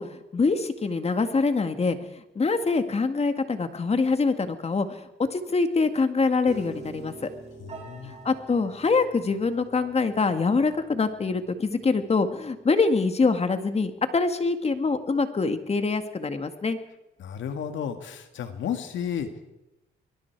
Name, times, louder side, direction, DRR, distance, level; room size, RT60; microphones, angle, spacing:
voice 1, 0.0-5.0 5.3-7.3 8.0-16.8, left 4 dB, 30° left, 8 dB, 2.0 m, -25 dB
Piano, 6.5-12.7, right 3 dB, 35° right, 5.5 m, -46 dB
voice 2, 7.6-8.2 17.2-19.5, left 8 dB, 75° left, 7 dB, 2.1 m, -33 dB
28.5 x 21.5 x 4.7 m, 0.96 s
cardioid pair, 90°, 20 cm